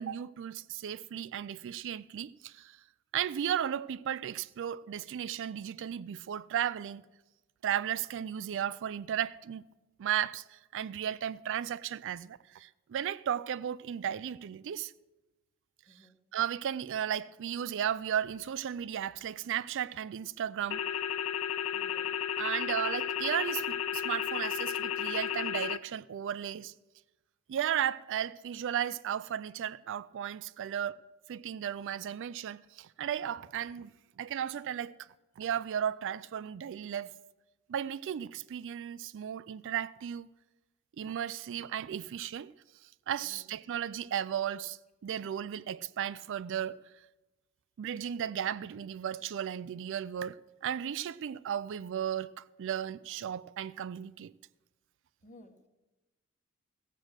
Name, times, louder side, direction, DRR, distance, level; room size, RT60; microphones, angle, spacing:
voice 1, 0.0-2.8 3.1-7.1 7.6-9.6 10.0-14.9 16.3-20.8 22.4-26.7 27.5-33.9 34.2-35.1 35.4-37.1 37.7-40.3 41.0-42.5 43.1-46.8 47.8-54.3, right 9 dB, 60° right, 0.3 m, -35 dB
voice 2, 15.9-16.2 21.7-22.1 43.2-43.5 55.2-55.7, left 1 dB, 35° left, 1.2 m, -56 dB
sound 1, 20.7-25.8, left 9 dB, 70° left, 0.4 m, -33 dB
15.0 x 7.5 x 6.5 m
head